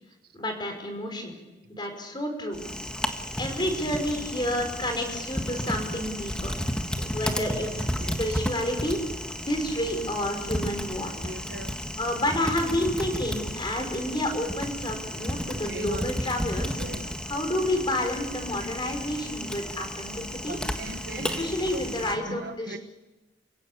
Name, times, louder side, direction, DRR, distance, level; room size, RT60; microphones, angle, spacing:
voice 1, 0.3-1.3 1.7-2.6 3.4-6.5 7.0-9.0 9.5-11.2 12.0-20.6 21.2-22.8, left 1 dB, 25° left, 4 dB, 5.5 m, -30 dB
Typing, 2.5-22.1, equal, 5° left, 1.6 m, -33 dB
voice 2, 11.2-11.7 15.7-16.0 16.8-17.0 20.5-21.4 22.3-22.4 22.7-22.8, right 2 dB, 60° right, 9 dB, 1.2 m, -38 dB
29.0 x 17.0 x 8.4 m, 1.1 s
head